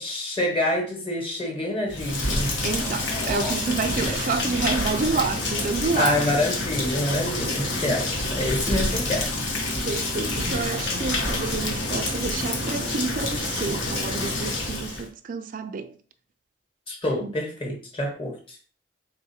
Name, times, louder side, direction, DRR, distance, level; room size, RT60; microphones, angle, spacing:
voice 1, 0.0-2.5 5.9-9.3 16.9-18.6, left 1 dB, 25° left, 1.1 m, -27 dB
Rain, 1.9-15.0, left 2 dB, 65° left, 0.9 m, -27 dB
sound 1, 2.6-4.7 5.2-5.3, left 1 dB, 5° left, 0.6 m, -38 dB
voice 2, 2.6-6.2 8.7-8.8 9.8-16.0 17.2-17.3, right 4 dB, 40° right, 0.3 m, -29 dB
3.8 x 2.3 x 4.2 m
head